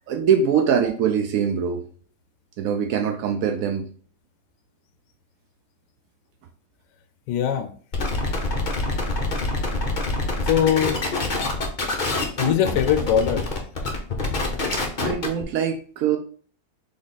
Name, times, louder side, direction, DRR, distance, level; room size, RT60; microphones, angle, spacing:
voice 1, 0.1-1.8 2.6-3.9 14.7-16.2, right 7 dB, 85° right, 5 dB, 0.7 m, -23 dB
voice 2, 7.3-7.7 10.4-11.0 12.4-13.5, left 9 dB, 75° left, 7 dB, 1.1 m, -21 dB
sound 1, 7.9-15.4, left 2 dB, 50° left, 0.5 m, -25 dB
4.0 x 3.3 x 4.0 m, 0.43 s
omnidirectional pair, 2.0 m